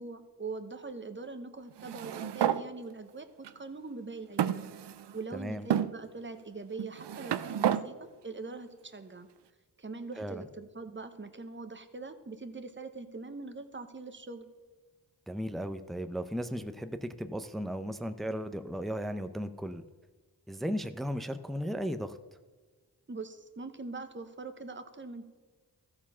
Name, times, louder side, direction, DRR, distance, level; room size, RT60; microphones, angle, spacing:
voice 1, 0.0-4.7 5.1-9.3 9.8-14.5 23.1-25.3, right 3 dB, 30° right, 9 dB, 1.0 m, -42 dB
sound 1, 1.8-2.6 3.4-3.5 4.4-5.2 5.7-5.9 6.8-7.8, right 10 dB, 90° right, 0.5 m, -30 dB
voice 2, 5.3-5.7 10.2-10.4 15.3-19.8 20.5-22.2, equal, ahead, 10 dB, 0.6 m, -35 dB
14.0 x 4.9 x 5.6 m, 1.4 s
cardioid pair, 45°, 40 cm